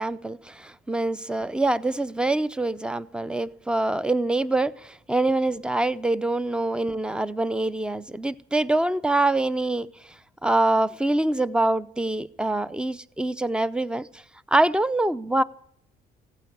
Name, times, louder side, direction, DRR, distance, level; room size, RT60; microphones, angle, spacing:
voice 1, 0.0-9.9 10.4-14.2 14.5-15.4, right 2 dB, 5° right, 18 dB, 0.5 m, -25 dB
15.5 x 9.1 x 8.5 m, 0.69 s
cardioid pair, 110°, 17 cm